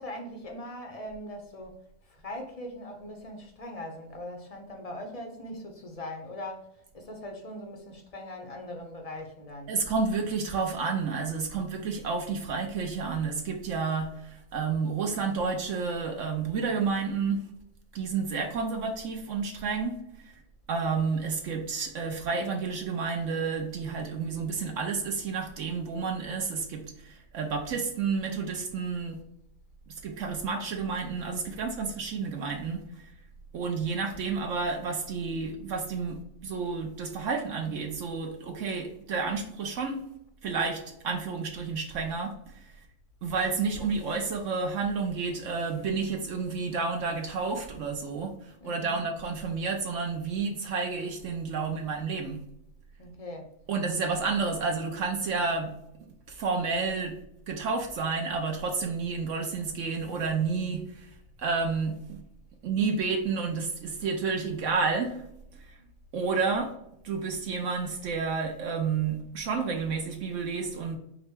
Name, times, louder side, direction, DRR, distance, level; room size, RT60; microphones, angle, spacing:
voice 1, 0.0-9.8 48.6-49.0 53.0-53.5 65.8-65.9, left 1 dB, 40° left, 0.6 m, -41 dB
voice 2, 9.7-17.4 17.9-20.0 20.7-29.2 29.9-33.1 33.5-40.0 40.4-42.7 43.2-52.4 53.7-55.7 56.3-57.2 57.5-61.1 61.4-62.2 62.6-65.2 65.6-65.7 66.1-66.7 67.0-71.0, right 4 dB, 65° right, 1.0 m, -30 dB
4.9 x 2.2 x 4.5 m
omnidirectional pair, 1.4 m